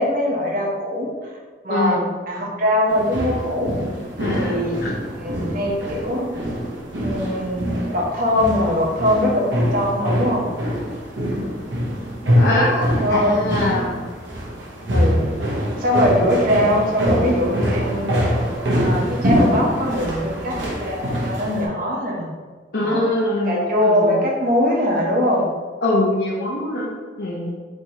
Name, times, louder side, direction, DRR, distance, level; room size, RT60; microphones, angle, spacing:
voice 1, 0.0-1.3 1.6-3.8 4.4-4.8 5.2-6.3 7.0-10.5 13.0-13.5 14.9-15.3 15.8-18.2 18.7-22.3 22.8-23.1 23.4-25.5, left 1 dB, 50° right, -2 dB, 0.9 m, -22 dB
voice 2, 1.7-2.0 4.2-4.9 12.4-14.0 22.7-24.2 25.8-26.9 27.2-27.5, left 1 dB, 60° left, -5 dB, 0.7 m, -23 dB
sound 1, 2.9-21.7, equal, 75° right, 1.0 m, -24 dB
3.4 x 2.8 x 4.3 m, 1.4 s
head